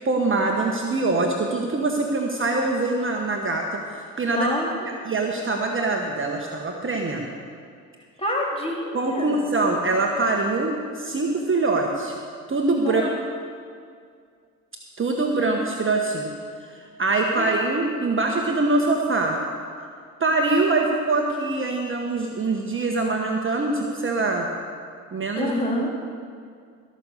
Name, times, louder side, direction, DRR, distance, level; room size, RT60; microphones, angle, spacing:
voice 1, 0.0-4.5 4.8-7.3 8.9-12.1 12.5-13.1 15.0-16.3 16.7-19.4 20.2-24.5 25.1-25.5, right 3 dB, 30° right, 1 dB, 1.4 m, -24 dB
voice 2, 4.3-4.7 8.2-9.5 12.7-13.1 17.4-17.5 25.3-26.0, left 1 dB, 15° left, -2 dB, 3.4 m, -27 dB
16.0 x 6.6 x 6.7 m, 2.1 s
hypercardioid pair, 60°, 42 cm